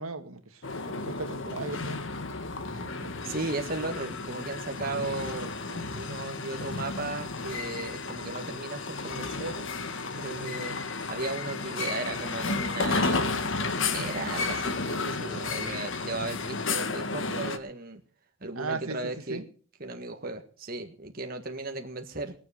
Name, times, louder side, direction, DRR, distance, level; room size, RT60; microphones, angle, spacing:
voice 1, 0.0-2.0 2.8-3.2 15.3-15.8 18.5-19.0 19.3-19.5, right 3 dB, 80° right, 1.8 m, -38 dB
sound 1, 0.6-17.6, left 3 dB, 60° left, 1.5 m, -32 dB
voice 2, 3.2-9.7 10.2-18.0 18.4-19.4 19.8-22.3, right 2 dB, 40° right, 1.6 m, -36 dB
20.5 x 7.4 x 6.9 m
head